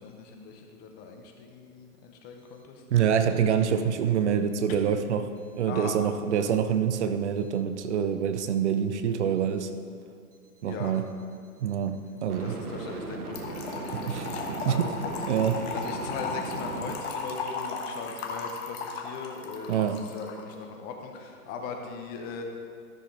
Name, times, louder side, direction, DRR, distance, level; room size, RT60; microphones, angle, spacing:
voice 1, 0.0-2.8 4.7-4.8 5.7-5.9 10.6-10.9 12.4-15.2 15.7-22.4, left 5 dB, 20° left, 3 dB, 0.7 m, -40 dB
voice 2, 2.9-5.2 5.6-9.7 10.6-11.1 11.6-12.5 13.9-14.8 15.3-15.7 19.7-20.0, right 8 dB, 50° right, 9 dB, 0.6 m, -26 dB
sound 1, 7.4-7.6 12.3-16.9, right 4 dB, 80° right, 1.2 m, -38 dB
Trickle dribble / Fill (with liquid), 13.3-20.4, left 4 dB, 45° left, 1.3 m, -36 dB
13.5 x 6.7 x 3.8 m, 2.3 s
hypercardioid pair, 135°, 45 cm